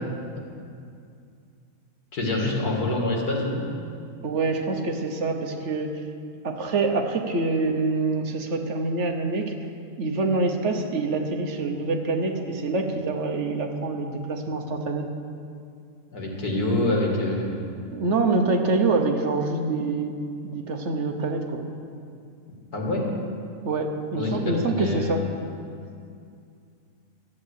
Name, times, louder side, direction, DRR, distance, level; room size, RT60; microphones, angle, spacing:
voice 1, 2.1-3.6 16.1-17.5 22.7-23.0 24.2-25.2, left 2 dB, 85° left, -1 dB, 2.6 m, -26 dB
voice 2, 4.2-6.0 6.4-9.5 10.0-15.1 17.9-20.1 20.4-21.6 23.6-25.2, right 3 dB, 55° right, 4 dB, 1.3 m, -26 dB
13.0 x 8.7 x 8.2 m, 2.4 s
omnidirectional pair, 1.6 m